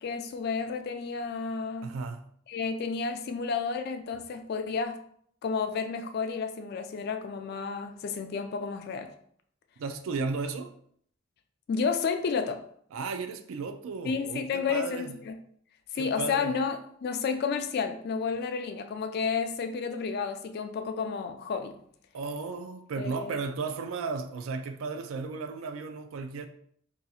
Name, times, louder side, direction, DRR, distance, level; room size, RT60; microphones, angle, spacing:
voice 1, 0.0-1.9 2.5-5.0 5.4-9.1 11.7-12.6 14.1-15.3 15.9-21.8 23.0-23.3, left 5 dB, 50° left, 0.3 m, -31 dB
voice 2, 1.8-2.2 9.8-10.7 12.9-15.2 16.0-16.6 22.1-26.5, right 4 dB, 80° right, 0.4 m, -34 dB
2.8 x 2.4 x 4.1 m
head